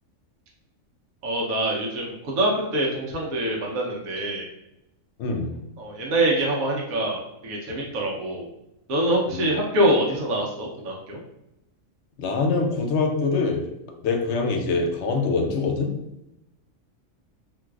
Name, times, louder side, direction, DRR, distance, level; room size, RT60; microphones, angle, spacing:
voice 1, 1.2-4.5 5.8-8.5 8.9-11.2, right 1 dB, 85° right, -2 dB, 1.1 m, -25 dB
voice 2, 5.2-5.5 9.3-9.5 12.2-13.6 14.0-15.9, left 4 dB, 65° left, 2 dB, 0.8 m, -24 dB
3.8 x 2.4 x 2.3 m, 0.86 s
omnidirectional pair, 1.4 m